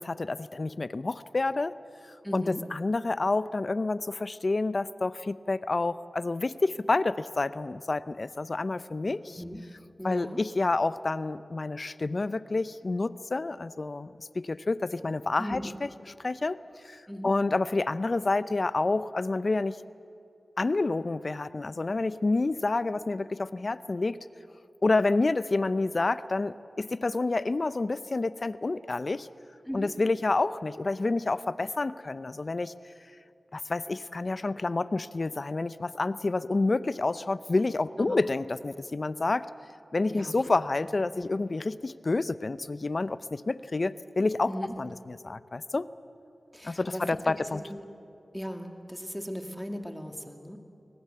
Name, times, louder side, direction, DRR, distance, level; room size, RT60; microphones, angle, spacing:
voice 1, 0.0-1.7 2.3-9.4 10.0-15.9 16.2-16.6 16.8-19.8 20.6-24.2 24.8-29.3 29.7-32.7 33.5-39.5 39.9-44.5 44.8-45.9 46.6-47.6, left 3 dB, 50° left, 15 dB, 0.6 m, -29 dB
voice 2, 2.2-2.6 9.3-9.6 10.0-10.4 15.4-15.7 17.1-17.3 29.7-29.9 38.0-38.2 40.1-40.3 40.8-41.3 44.5-44.8 46.5-47.8 48.3-50.6, equal, ahead, 4 dB, 2.3 m, -38 dB
22.5 x 19.5 x 8.0 m, 2.6 s
cardioid pair, 45°, 0 cm